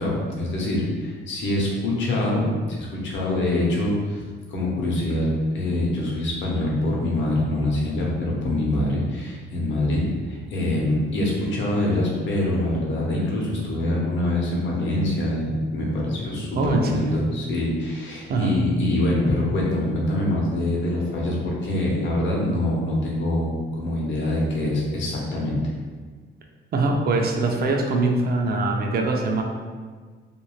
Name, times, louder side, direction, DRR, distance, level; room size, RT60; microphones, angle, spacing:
voice 1, 0.0-4.2 4.5-25.6, left 1 dB, 70° left, -3 dB, 0.8 m, -24 dB
voice 2, 16.6-17.1 18.3-18.5 26.7-29.4, right 3 dB, 50° right, 2 dB, 0.5 m, -23 dB
2.5 x 2.3 x 3.1 m, 1.5 s
cardioid pair, 90°, 20 cm